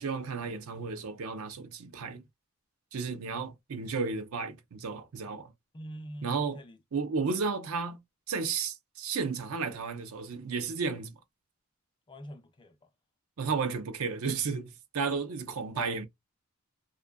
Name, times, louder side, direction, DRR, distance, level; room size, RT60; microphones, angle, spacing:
voice 1, 0.0-2.2 2.9-5.5 6.2-6.6 6.9-8.0 8.3-11.1 13.4-16.1, right 5 dB, 75° right, 0.5 m, -33 dB
voice 2, 5.7-6.8 12.1-12.8 15.7-15.9, equal, 20° left, 0.4 m, -44 dB
2.5 x 2.3 x 2.2 m
head